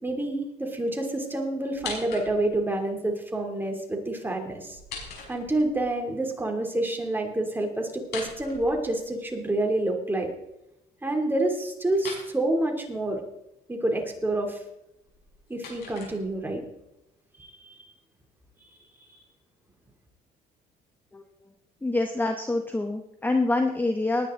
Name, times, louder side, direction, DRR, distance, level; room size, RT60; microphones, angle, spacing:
voice 1, 0.0-4.8 5.3-10.3 11.0-13.2 13.7-14.6 15.5-16.6 17.4-17.8 19.1-19.2, right 1 dB, 10° right, 2 dB, 2.8 m, -28 dB
sound 1, 1.7-2.7 4.6-5.9 8.0-9.3 11.9-12.3 15.0-16.6, left 4 dB, 70° left, 5.4 m, -41 dB
voice 2, 21.8-24.3, left 2 dB, 10° left, 4 dB, 1.0 m, -26 dB
19.5 x 9.3 x 3.8 m, 0.85 s
cardioid pair, 110°, 17 cm